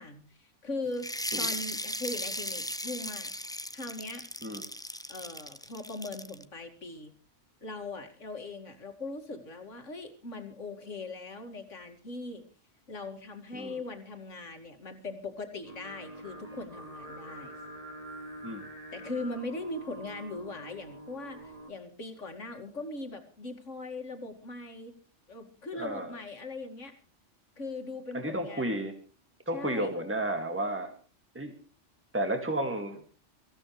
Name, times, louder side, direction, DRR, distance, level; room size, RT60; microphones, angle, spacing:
voice 1, 0.0-3.3 3.7-4.2 5.1-7.1 7.6-12.4 12.9-17.5 18.9-24.9 25.3-26.9 27.6-28.9 29.5-29.9, left 2 dB, 90° left, 5 dB, 2.6 m, -40 dB
sound 1, 1.0-6.4, left 1 dB, 5° left, 0.4 m, -37 dB
Singing, 15.6-21.7, right 1 dB, 30° right, 4.1 m, -45 dB
voice 2, 25.7-26.2 28.1-28.9 29.5-30.9 31.3-31.5 32.1-33.0, right 1 dB, 10° right, 5 dB, 2.2 m, -32 dB
24.5 x 15.5 x 3.2 m, 0.36 s
omnidirectional pair, 1.2 m